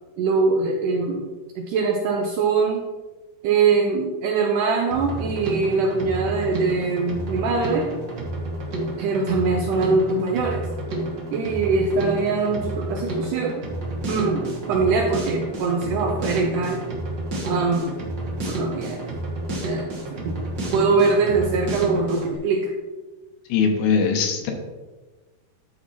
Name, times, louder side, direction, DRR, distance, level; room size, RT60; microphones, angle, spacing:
voice 1, 0.2-1.3 1.6-2.8 3.4-8.0 9.0-10.6 11.3-13.6 14.1-16.8 17.4-18.0 18.4-19.0 19.6-19.9 20.2-20.4 20.7-22.7, right 4 dB, 80° right, 1 dB, 1.9 m, -22 dB
Drum kit, 4.9-22.3, right 1 dB, 60° right, 1.1 m, -30 dB
voice 2, 23.5-24.5, left 5 dB, 75° left, 3 dB, 2.8 m, -21 dB
12.0 x 4.3 x 4.2 m, 1.2 s
omnidirectional pair, 4.4 m